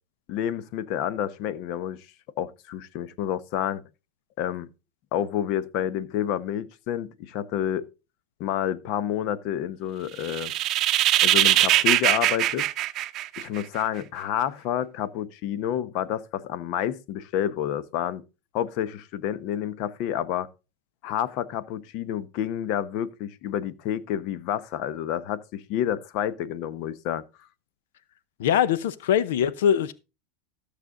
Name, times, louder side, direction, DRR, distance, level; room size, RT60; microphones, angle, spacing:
voice 1, 0.3-2.1 2.4-3.8 4.4-4.7 5.1-7.9 8.4-10.5 11.2-12.7 13.4-18.2 18.5-20.5 21.0-27.2, left 10 dB, 50° left, 0.9 m, -29 dB
sound 1, 10.2-13.8, right 14 dB, 40° right, 0.7 m, -22 dB
voice 2, 28.4-29.9, left 9 dB, 85° left, 0.7 m, -22 dB
14.0 x 6.7 x 3.8 m
supercardioid pair, 140°, 0 cm